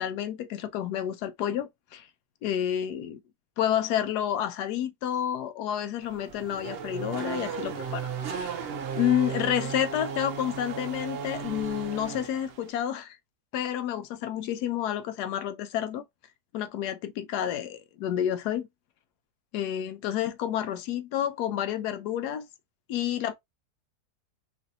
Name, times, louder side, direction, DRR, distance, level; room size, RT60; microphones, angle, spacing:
voice 1, 0.0-2.1 2.4-3.2 3.6-8.5 8.9-13.2 13.5-16.0 16.5-18.7 19.5-22.5 22.9-23.3, left 10 dB, 85° left, 1.1 m, -30 dB
Race car auto racing / Accelerating revving vroom, 6.0-12.7, right 6 dB, 75° right, 0.5 m, -35 dB
3.2 x 2.6 x 2.6 m
omnidirectional pair, 1.7 m